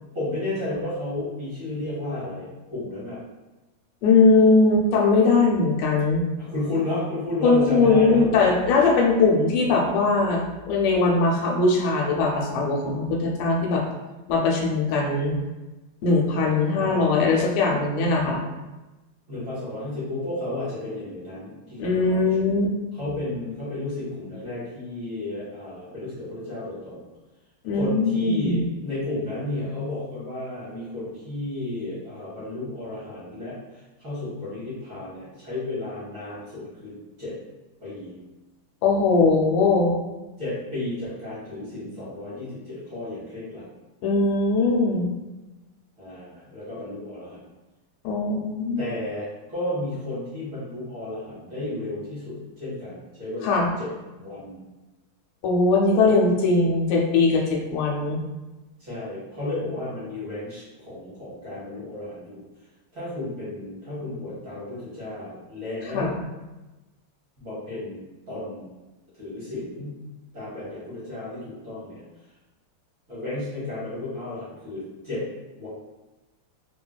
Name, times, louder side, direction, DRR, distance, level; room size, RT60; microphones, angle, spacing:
voice 1, 0.1-3.2 6.4-8.2 16.7-17.1 19.3-22.5 22.9-27.0 27.7-33.6 34.0-37.3 37.8-38.2 40.4-43.6 46.0-47.4 48.8-53.9 54.2-54.6 58.8-62.4 62.9-66.2 67.4-68.0 68.3-68.7 69.2-69.9 70.3-72.0 73.1-75.2 75.6-75.7, left 2 dB, 45° right, -10 dB, 1.2 m, -33 dB
voice 2, 4.0-6.2 7.4-13.8 14.3-15.4 16.0-18.4 21.8-22.7 27.6-28.6 38.8-40.0 44.0-45.1 48.0-48.8 53.4-53.7 55.4-58.2 65.9-66.1, left 3 dB, 85° left, 0 dB, 1.5 m, -20 dB
3.8 x 2.3 x 2.2 m, 1.1 s
omnidirectional pair, 2.3 m